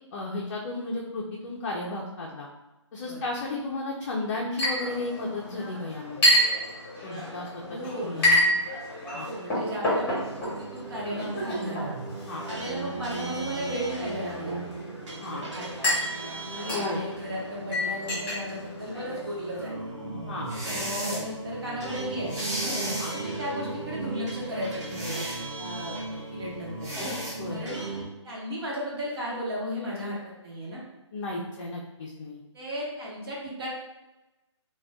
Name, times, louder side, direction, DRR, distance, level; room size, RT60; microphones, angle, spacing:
voice 1, 0.1-2.5 2.9-6.3 7.0-7.6 8.0-8.5 9.1-9.3 12.3-12.4 15.2-15.5 16.7-17.0 20.3-20.6 23.0-23.1 27.3-27.7 31.1-32.4, left 2 dB, 40° left, -3 dB, 0.4 m, -34 dB
voice 2, 3.0-3.4 7.7-8.3 9.2-12.0 12.4-14.6 15.3-15.9 16.4-19.7 20.6-22.5 23.1-25.3 25.6-26.9 27.5-27.8 28.2-30.8 32.5-33.7, equal, 50° right, -5 dB, 1.1 m, -35 dB
Chink clink, 4.6-19.6, equal, 10° left, 1.0 m, -30 dB
sound 1, 9.9-28.0, right 2 dB, 75° right, 0.8 m, -37 dB
sound 2, 20.5-21.2 22.3-23.2 24.9-25.4 26.8-27.4, equal, 15° right, 0.7 m, -33 dB
2.5 x 2.2 x 3.3 m, 1.0 s
figure-of-eight pair, 145°, 16 cm